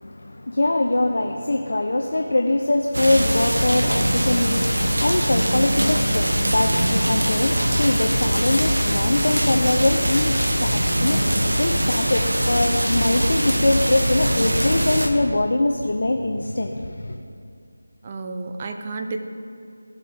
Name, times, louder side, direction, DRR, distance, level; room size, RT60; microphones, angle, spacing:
voice 1, 0.0-17.2, left 2 dB, 60° left, 3 dB, 0.7 m, -23 dB
sound 1, 2.9-15.1, equal, 80° right, 1.2 m, -22 dB
voice 2, 18.0-19.2, right 3 dB, 25° right, 5 dB, 0.6 m, -31 dB
16.0 x 7.5 x 3.5 m, 2.4 s
figure-of-eight pair, 165°, 0 cm